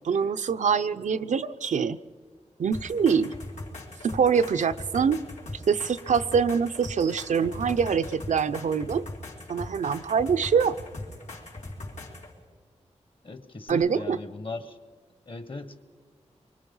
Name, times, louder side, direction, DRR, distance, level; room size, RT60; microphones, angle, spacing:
voice 1, 0.0-2.0 2.6-3.3 4.0-5.2 5.7-9.1 9.5-10.8 13.7-14.2, right 6 dB, 85° right, 10 dB, 0.6 m, -24 dB
sound 1, 2.7-12.3 13.7-13.8, left 2 dB, 80° left, 4.1 m, -40 dB
voice 2, 13.2-14.8 15.2-15.8, left 3 dB, 45° left, 11 dB, 1.5 m, -38 dB
24.5 x 24.0 x 5.5 m, 1.5 s
wide cardioid pair, 80°, 12 cm